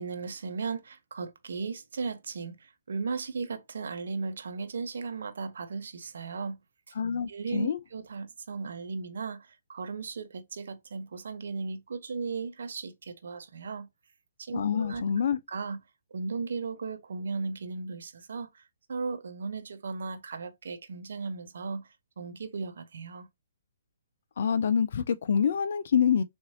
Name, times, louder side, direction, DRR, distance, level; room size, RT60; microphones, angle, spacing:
voice 1, 0.0-6.6 7.3-13.9 14.4-15.0 15.5-15.8 16.1-18.6 18.9-21.9 22.2-23.3, right 4 dB, 60° right, 0.9 m, -36 dB
voice 2, 7.0-7.8 14.5-15.4 24.4-26.2, left 7 dB, 55° left, 0.5 m, -26 dB
6.9 x 2.7 x 2.8 m
figure-of-eight pair, 125°, 0 cm